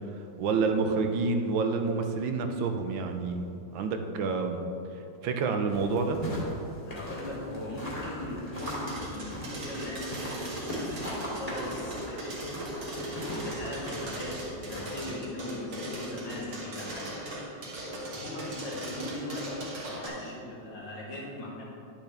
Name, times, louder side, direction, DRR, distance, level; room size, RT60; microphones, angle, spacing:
voice 1, 0.4-3.5 3.7-4.6 5.2-6.2, right 4 dB, 85° right, 5 dB, 1.5 m, -28 dB
sound 1, 5.7-15.0, equal, 20° left, 2.3 m, -39 dB
voice 2, 6.9-12.5 13.0-17.4 18.1-21.7, left 1 dB, 70° left, -5 dB, 2.7 m, -39 dB
sound 2, 8.6-20.1, right 1 dB, 70° right, 2.5 m, -38 dB
10.5 x 7.9 x 3.5 m, 2.7 s
omnidirectional pair, 2.1 m